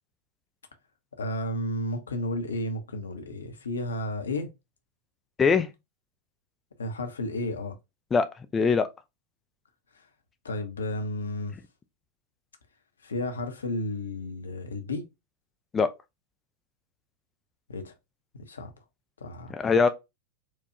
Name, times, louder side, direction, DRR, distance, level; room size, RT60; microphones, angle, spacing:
voice 1, 1.2-4.5 6.8-7.8 10.4-11.5 13.0-15.0 17.7-17.9 18.3-18.7 19.2-19.5, left 1 dB, 70° left, 0.8 m, -32 dB
voice 2, 5.4-5.7 8.1-8.3 8.5-8.9 15.7-15.9 19.5-19.9, left 5 dB, 20° left, 0.4 m, -21 dB
4.5 x 2.3 x 2.8 m
figure-of-eight pair, 90°, 0 cm